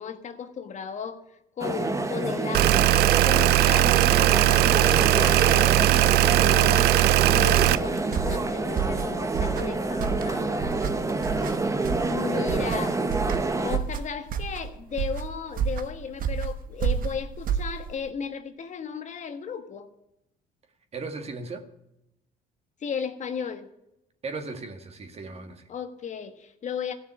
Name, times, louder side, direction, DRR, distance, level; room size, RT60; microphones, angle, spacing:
voice 1, 0.0-7.0 7.3-10.7 12.0-13.0 13.6-19.9 22.8-23.7 25.7-26.9, left 7 dB, 45° left, 8 dB, 1.4 m, -35 dB
sound 1, 1.6-13.8, right 3 dB, 20° right, 1.1 m, -28 dB
sound 2, 2.5-7.8, right 17 dB, 70° right, 0.4 m, -19 dB
sound 3, 7.5-18.1, right 7 dB, 55° right, 1.1 m, -31 dB
voice 2, 12.3-12.7 20.9-21.6 24.2-25.6, right 3 dB, 40° right, 6 dB, 1.9 m, -37 dB
15.5 x 6.7 x 9.6 m, 0.84 s
cardioid pair, 110°, 17 cm